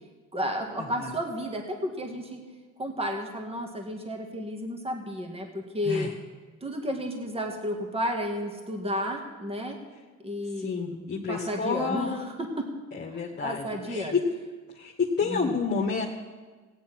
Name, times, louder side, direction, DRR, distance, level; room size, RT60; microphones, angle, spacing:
voice 1, 0.3-2.4 2.8-6.1 6.6-9.8 10.2-12.7 13.1-14.2 15.2-15.4, equal, 20° right, 3 dB, 1.9 m, -32 dB
voice 2, 10.6-12.3 12.9-14.2 14.7-16.1, left 5 dB, 35° left, -2 dB, 1.8 m, -29 dB
15.5 x 9.7 x 6.1 m, 1.4 s
cardioid pair, 90°, 30 cm